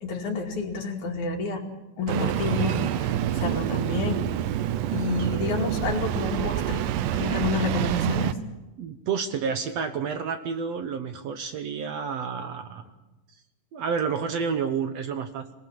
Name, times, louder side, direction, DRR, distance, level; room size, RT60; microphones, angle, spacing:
voice 1, 0.0-4.2 4.9-6.9 7.2-8.4, left 4 dB, 65° left, 2 dB, 3.8 m, -29 dB
Engine starting, 2.1-8.3, right 11 dB, 80° right, 2.4 m, -27 dB
voice 2, 8.8-12.8 13.7-15.5, right 6 dB, 65° right, 8 dB, 1.9 m, -30 dB
25.0 x 19.5 x 7.3 m, 1.0 s
omnidirectional pair, 3.7 m